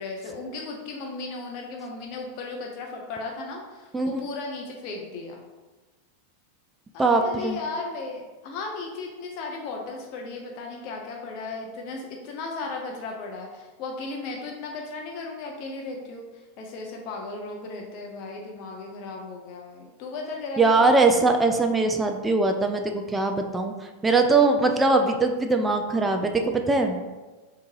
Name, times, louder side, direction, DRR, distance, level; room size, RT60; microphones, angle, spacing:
voice 1, 0.0-5.4 6.9-21.1, left 3 dB, 50° left, 0 dB, 0.7 m, -36 dB
voice 2, 7.0-7.6 20.6-23.7 24.0-27.0, right 3 dB, 15° right, 4 dB, 0.4 m, -21 dB
3.4 x 2.9 x 4.7 m, 1.2 s
hypercardioid pair, 110°, 0 cm